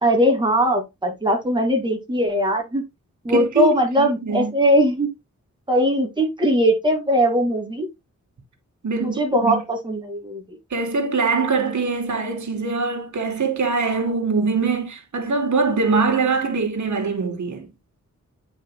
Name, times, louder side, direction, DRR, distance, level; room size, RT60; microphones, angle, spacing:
voice 1, 0.0-2.8 3.2-5.1 5.7-7.9 9.0-10.4, equal, 15° right, 2.2 m, -20 dB
voice 2, 3.3-4.5 8.8-9.6 10.7-17.7, right 4 dB, 70° right, 2.1 m, -23 dB
9.5 x 5.0 x 2.2 m
wide cardioid pair, 155°, 30 cm